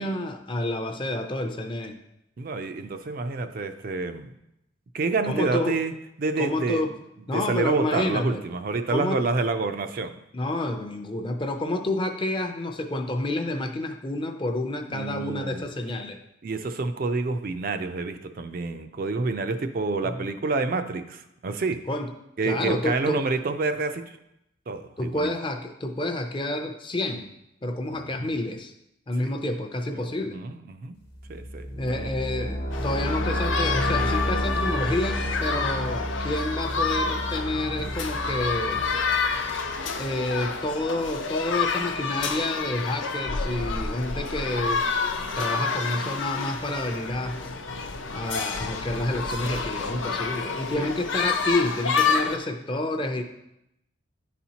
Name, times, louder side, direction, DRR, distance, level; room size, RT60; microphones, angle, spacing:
voice 1, 0.0-2.0 5.3-5.8 6.4-6.9 7.3-8.4 8.9-9.2 10.3-16.2 20.0-20.2 21.9-22.1 22.4-23.3 25.0-27.3 27.6-28.7 29.1-30.4 31.8-38.8 40.0-44.9 45.4-47.4 48.1-53.2, left 1 dB, 25° left, 5 dB, 0.5 m, -29 dB
voice 2, 2.4-4.3 4.9-5.9 6.2-6.8 7.3-10.2 14.9-15.6 16.4-21.8 22.4-24.0 24.7-25.3 27.9-28.3 29.9-31.0 31.3-31.7 31.9-32.1 50.8-50.9, right 3 dB, 45° right, 8 dB, 0.4 m, -28 dB
sound 1, 31.1-40.0, equal, 50° left, 1.1 m, -31 dB
sound 2, 32.7-52.4, left 4 dB, 70° left, 0.6 m, -29 dB
10.5 x 4.2 x 2.8 m, 0.83 s
head